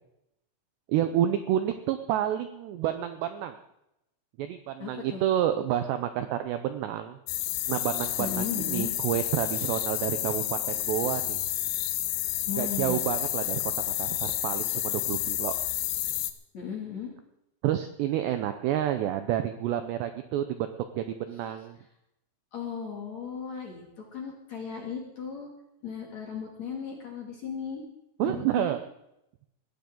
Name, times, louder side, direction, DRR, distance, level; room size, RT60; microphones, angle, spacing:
voice 1, 0.9-3.6 4.4-7.2 7.7-11.4 12.6-15.5 17.6-21.8 28.2-28.8, right 11 dB, 80° right, 8 dB, 2.5 m, -29 dB
voice 2, 4.8-5.2 8.2-8.9 12.5-13.0 16.5-17.1 22.5-25.5 25.8-27.8 28.2-28.7, left 6 dB, 45° left, 0 dB, 3.0 m, -36 dB
sound 1, 7.3-16.3, left 14 dB, 80° left, 3.1 m, -30 dB
20.0 x 14.0 x 3.9 m, 0.85 s
omnidirectional pair, 5.8 m